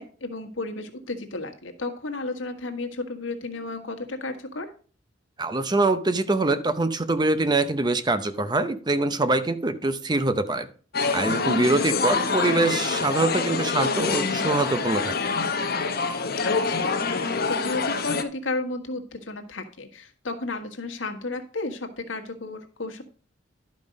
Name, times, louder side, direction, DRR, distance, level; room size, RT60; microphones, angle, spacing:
voice 1, 0.0-4.7 11.4-11.7 16.4-16.9 17.5-23.0, left 2 dB, 90° left, 5 dB, 1.5 m, -33 dB
voice 2, 5.4-10.7 11.1-15.2, right 2 dB, 20° right, 11 dB, 0.7 m, -24 dB
sound 1, 10.9-18.2, left 4 dB, 55° left, 1.0 m, -26 dB
11.5 x 5.3 x 5.2 m, 0.40 s
head